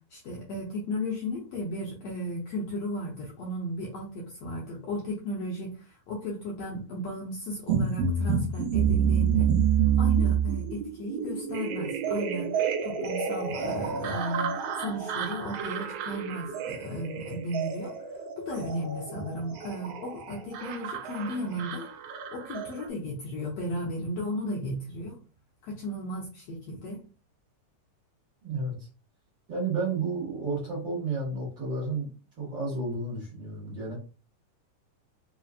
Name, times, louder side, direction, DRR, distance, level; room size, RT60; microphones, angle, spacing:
voice 1, 0.1-9.5 10.0-17.9 18.4-21.9 22.3-25.2 25.6-27.0, equal, 70° left, -3 dB, 1.7 m, -35 dB
sound 1, 7.7-22.9, right 7 dB, 90° right, 1.4 m, -29 dB
voice 2, 28.4-28.9 29.5-32.1 32.4-33.9, right 3 dB, 40° right, -6 dB, 2.2 m, -31 dB
5.0 x 3.0 x 2.4 m, 0.34 s
omnidirectional pair, 3.7 m